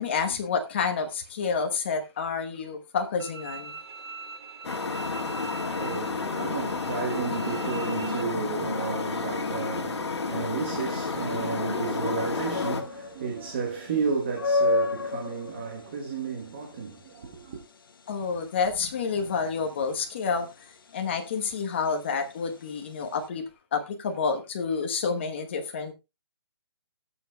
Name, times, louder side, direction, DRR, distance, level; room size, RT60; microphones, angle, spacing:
voice 1, 0.0-3.8 18.1-23.4 23.7-25.9, left 5 dB, 25° left, 1.1 m, -29 dB
Bowed string instrument, 3.2-8.2, right 4 dB, 65° right, 1.3 m, -42 dB
sound 1, 4.6-12.8, left 4 dB, 75° left, 1.8 m, -31 dB
voice 2, 5.3-17.6, right 5 dB, 25° right, 1.1 m, -33 dB
sound 2, 12.5-23.3, left 3 dB, 50° left, 0.9 m, -33 dB
19.0 x 7.0 x 2.2 m
hypercardioid pair, 170°, 14 cm